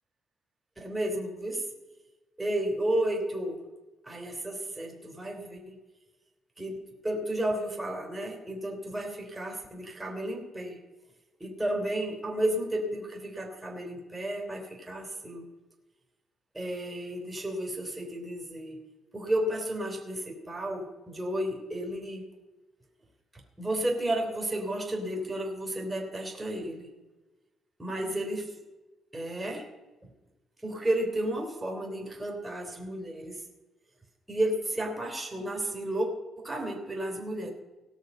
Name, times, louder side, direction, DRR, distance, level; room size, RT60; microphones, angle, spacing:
voice 1, 0.8-1.6 2.4-3.6 4.0-5.8 6.6-6.8 7.0-10.8 11.4-15.4 16.5-18.8 19.1-22.2 23.3-26.9 27.8-28.6 29.1-29.6 30.0-30.1 30.6-33.4 34.3-36.1 36.4-37.5, right 1 dB, 10° right, 1 dB, 3.3 m, -32 dB
18.0 x 6.3 x 5.5 m, 1.1 s
cardioid pair, 90°, 0 cm